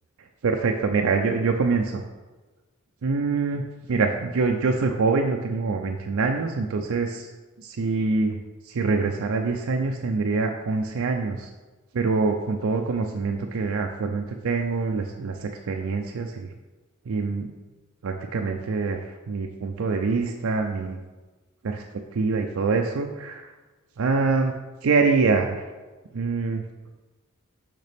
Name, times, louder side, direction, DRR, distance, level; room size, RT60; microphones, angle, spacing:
voice 1, 0.4-2.0 3.0-7.3 7.6-8.4 8.7-11.4 11.9-16.5 17.1-17.5 18.0-21.0 21.6-21.8 22.1-23.5 24.0-24.6 24.8-25.6 26.1-26.6, right 4 dB, 70° right, 3 dB, 0.4 m, -25 dB
6.5 x 5.9 x 3.4 m, 1.2 s
head